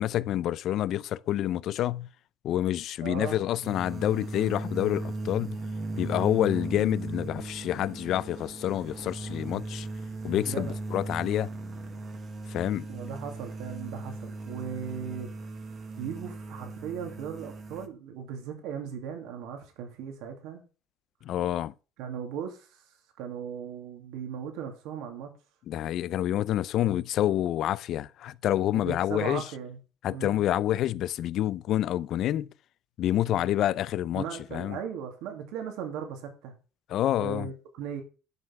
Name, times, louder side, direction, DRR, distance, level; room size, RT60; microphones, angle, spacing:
voice 1, 0.0-2.1 2.4-5.6 6.0-9.9 10.2-11.5 12.5-12.9 21.3-21.7 25.7-29.4 30.0-32.5 33.0-34.2 34.5-34.8 36.9-37.5, left 12 dB, 55° left, 0.5 m, -28 dB
voice 2, 3.0-3.4 10.4-10.8 12.9-15.3 16.0-20.6 22.0-22.8 23.2-25.3 28.7-29.8 30.1-30.4 34.1-36.5 37.2-38.0, right 7 dB, 75° right, 2.5 m, -37 dB
sound 1, 3.6-17.9, right 2 dB, 35° right, 1.5 m, -37 dB
11.0 x 5.7 x 5.9 m
cardioid pair, 135°, 0 cm